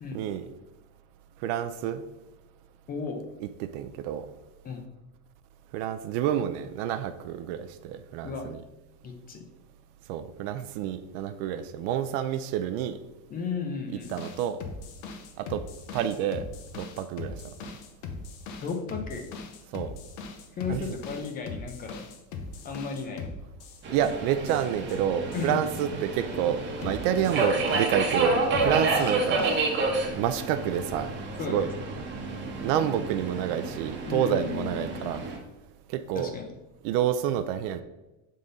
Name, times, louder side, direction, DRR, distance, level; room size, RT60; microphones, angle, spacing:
voice 1, 0.1-0.5 1.4-2.0 3.4-4.3 5.7-8.6 10.1-13.0 13.9-14.6 15.4-15.6 15.9-16.5 16.8-17.4 19.7-19.9 20.7-21.0 23.9-29.4 30.2-31.1 31.4-31.7 32.6-35.2 35.9-36.3 36.8-37.8, right 10 dB, 85° right, 0.5 m, -29 dB
voice 2, 2.9-3.2 4.6-4.8 8.2-8.5 9.0-9.5 13.3-14.1 18.6-19.3 20.6-22.0 22.6-23.3 25.3-25.7 28.6-29.0 31.4-31.6 34.1-35.1 36.1-36.5, left 5 dB, 25° left, 0.6 m, -34 dB
sound 1, 14.0-24.1 24.5-25.0 25.3-25.8 26.8-28.2 28.5-29.6, left 4 dB, 80° left, 0.9 m, -40 dB
Subway metro underground, 23.8-35.4, right 3 dB, 30° right, 1.0 m, -29 dB
6.9 x 3.8 x 3.8 m
cardioid pair, 175°, 36 cm